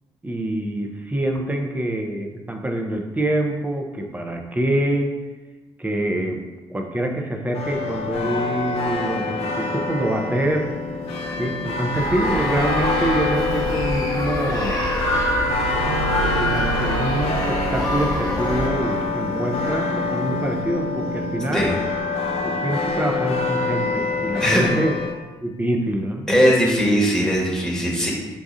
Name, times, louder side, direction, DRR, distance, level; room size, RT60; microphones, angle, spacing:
voice 1, 0.2-5.2 5.8-6.4 6.7-10.7 11.4-14.8 16.2-21.7 22.4-24.9 25.4-26.3, right 1 dB, 15° right, 3 dB, 0.6 m, -25 dB
sound 1, 7.5-25.1, left 3 dB, 55° left, 0.6 m, -26 dB
sound 2, 11.0-20.6, right 1 dB, 90° right, 0.6 m, -37 dB
sound 3, 11.9-18.7, left 1 dB, 30° left, 0.9 m, -26 dB
voice 2, 24.4-24.8 26.3-28.1, equal, 5° left, -4 dB, 1.2 m, -19 dB
5.3 x 2.3 x 2.5 m, 1.2 s
hypercardioid pair, 40°, 13 cm